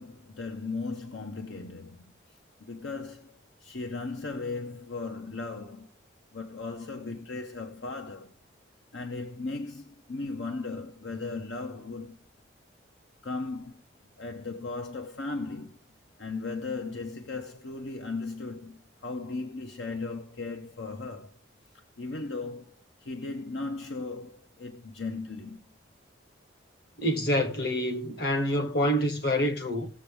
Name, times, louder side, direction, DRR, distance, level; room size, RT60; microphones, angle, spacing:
voice 1, 0.0-2.0 2.3-5.9 6.3-8.3 8.9-12.2 13.2-13.8 14.2-15.8 16.2-21.4 21.7-25.7, left 3 dB, 75° left, 0.9 m, -37 dB
voice 2, 27.0-29.9, equal, 55° left, 1.5 m, -27 dB
18.0 x 7.1 x 3.4 m
head